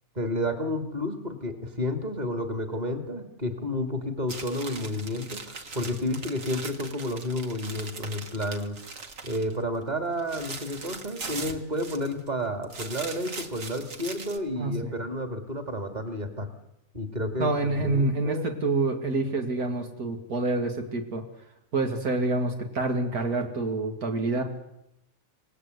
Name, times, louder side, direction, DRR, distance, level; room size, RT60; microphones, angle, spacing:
voice 1, 0.2-8.8 9.2-16.5 16.9-18.5, left 1 dB, 30° right, 6 dB, 2.5 m, -31 dB
sound 1, 4.3-9.6 9.9-12.3 12.6-14.4, right 4 dB, 60° right, 2.2 m, -40 dB
voice 2, 14.6-14.9 17.4-21.2 21.7-24.4, right 2 dB, 90° right, 3 dB, 2.6 m, -27 dB
27.5 x 18.0 x 8.2 m, 0.85 s
omnidirectional pair, 1.5 m